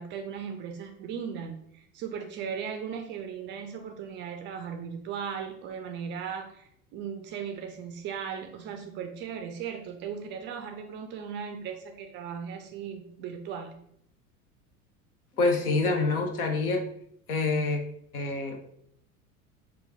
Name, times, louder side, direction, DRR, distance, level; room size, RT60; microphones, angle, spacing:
voice 1, 0.0-13.7 15.6-15.8, right 7 dB, 30° right, 5 dB, 0.3 m, -37 dB
voice 2, 15.4-16.8 17.3-17.8 18.1-18.6, left 3 dB, 75° left, 3 dB, 0.8 m, -26 dB
3.1 x 2.3 x 3.5 m, 0.69 s
figure-of-eight pair, 80°, 44 cm